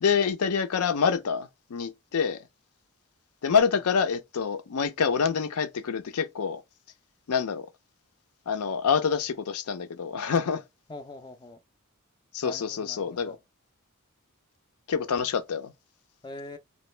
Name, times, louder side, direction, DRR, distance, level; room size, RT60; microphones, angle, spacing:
voice 1, 0.0-2.5 3.4-6.6 7.3-7.7 8.5-10.6 12.3-13.4 14.9-15.7, left 6 dB, 75° left, 0.5 m, -26 dB
voice 2, 10.9-11.6 12.4-13.4 16.2-16.6, left 2 dB, 20° left, 0.3 m, -43 dB
3.0 x 2.5 x 3.1 m
head